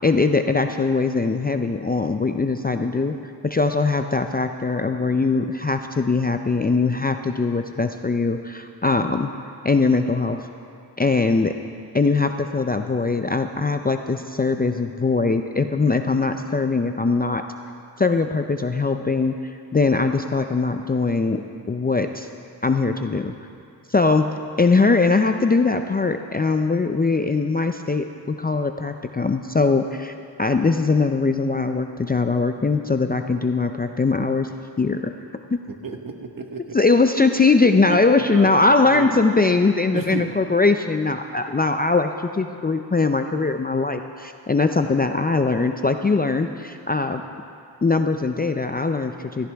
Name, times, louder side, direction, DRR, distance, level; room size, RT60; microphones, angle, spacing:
voice 1, 0.0-3.2 3.4-9.3 9.6-10.5 11.0-11.5 11.9-17.4 18.0-22.3 22.6-23.3 23.9-24.3 24.6-30.1 30.4-34.5 34.8-35.1 36.7-47.2 47.8-49.5, left 3 dB, 20° left, 6 dB, 0.4 m, -21 dB
voice 2, 35.7-36.8 37.7-39.1 39.9-40.3, right 4 dB, 50° right, 4 dB, 1.2 m, -33 dB
16.0 x 14.0 x 3.4 m, 2.4 s
wide cardioid pair, 95°, 44 cm